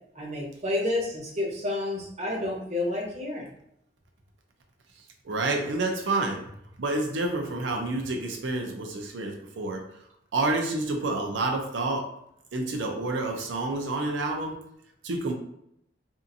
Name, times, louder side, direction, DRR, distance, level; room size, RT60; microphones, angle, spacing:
voice 1, 0.1-3.5, left 2 dB, 35° right, -2 dB, 0.8 m, -30 dB
voice 2, 5.2-6.4 6.8-9.8 10.3-12.1 12.5-14.6 15.0-15.3, right 2 dB, 75° right, 2 dB, 0.6 m, -28 dB
2.7 x 2.5 x 2.6 m, 0.75 s
head